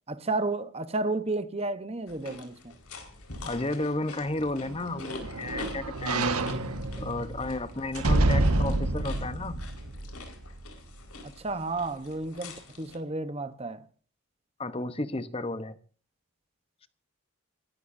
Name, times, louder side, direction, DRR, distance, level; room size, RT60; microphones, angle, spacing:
voice 1, 0.1-2.7 11.4-13.8, right 2 dB, 25° right, 0.9 m, -32 dB
sound 1, 2.1-13.0, left 3 dB, 85° left, 4.7 m, -46 dB
voice 2, 3.4-6.3 7.0-9.6 14.6-15.8, left 2 dB, 25° left, 0.8 m, -32 dB
sound 2, 4.3-10.7 11.1-11.2, right 2 dB, 85° right, 1.5 m, -28 dB
28.0 x 14.5 x 2.7 m
head